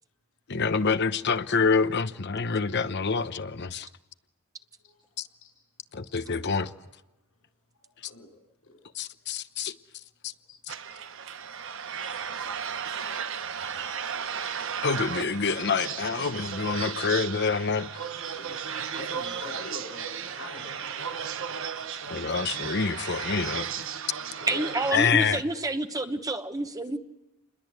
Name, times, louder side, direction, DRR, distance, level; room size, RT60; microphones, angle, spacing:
voice 1, 0.5-3.9 5.9-6.7 8.9-9.7 10.2-10.3 14.8-17.9 22.1-23.7 24.9-25.4, left 5 dB, 50° left, 0.9 m, -26 dB
voice 2, 5.9-6.6 8.0-8.8 10.5-10.6 10.9-11.0 11.9-12.0 14.1-14.4 18.2-18.6 18.9-21.2 24.2-25.7, left 2 dB, 75° left, 5.3 m, -45 dB
sound 1, 10.7-24.9, right 7 dB, 60° right, 1.1 m, -35 dB
voice 3, 24.5-27.0, right 2 dB, 15° right, 1.1 m, -28 dB
28.5 x 21.5 x 8.2 m
head